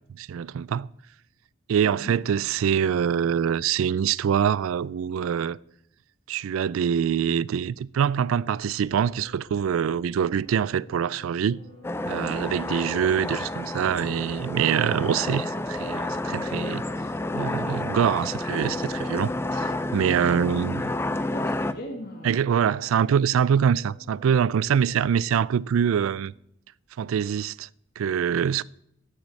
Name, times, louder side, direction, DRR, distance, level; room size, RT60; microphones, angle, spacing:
voice 1, 0.2-0.9 1.7-5.6 6.3-11.6 12.0-16.8 17.3-20.8 22.2-26.3 27.0-27.7 28.0-28.6, right 8 dB, 75° right, 0.3 m, -24 dB
voice 2, 1.8-2.2 20.1-20.9 21.2-22.3, equal, 45° left, 1.9 m, -38 dB
sound 1, 8.8-25.4, left 2 dB, 80° left, 4.8 m, -51 dB
sound 2, 11.8-21.7, left 2 dB, 10° left, 0.4 m, -30 dB
13.5 x 9.6 x 4.1 m
head